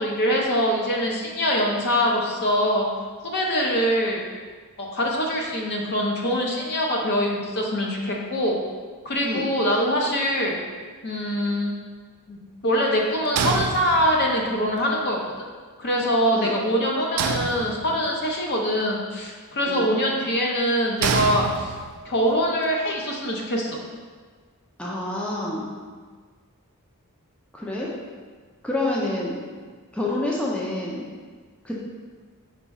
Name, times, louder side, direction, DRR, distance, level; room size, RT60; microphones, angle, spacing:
voice 1, 0.0-2.9 3.2-4.2 4.8-8.6 9.0-10.6 11.0-11.7 12.3-15.2 15.8-21.7 22.0-23.8, equal, 50° left, -1 dB, 0.6 m, -23 dB
sound 1, 13.4-14.4 17.2-18.2 21.0-22.1, right 5 dB, 70° right, 0.3 m, -27 dB
voice 2, 24.8-25.7 27.5-27.9 28.6-29.4 29.9-31.0 31.6-31.8, left 1 dB, 5° left, -5 dB, 0.4 m, -27 dB
4.6 x 2.3 x 4.0 m, 1.5 s
head